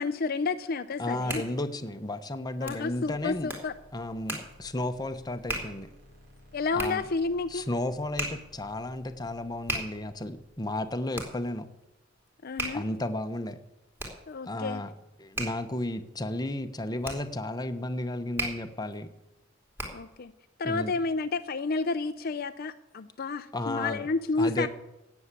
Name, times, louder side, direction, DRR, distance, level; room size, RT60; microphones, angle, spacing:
voice 1, 0.0-1.5 2.6-3.7 6.5-7.7 12.4-12.8 14.3-14.8 19.9-20.3 20.6-24.7, left 3 dB, 50° left, 10 dB, 0.5 m, -30 dB
Hands, 0.9-20.2, right 1 dB, 10° right, 3.3 m, -40 dB
voice 2, 1.0-3.5 3.9-5.9 6.7-7.0 7.5-11.7 12.7-13.6 14.4-14.9 15.2-19.1 20.6-20.9 23.5-24.0 24.4-24.7, left 1 dB, 20° left, 8 dB, 0.9 m, -33 dB
sound 1, 2.4-11.2, left 1 dB, 60° right, 4.8 m, -56 dB
17.5 x 7.2 x 8.3 m, 0.99 s
head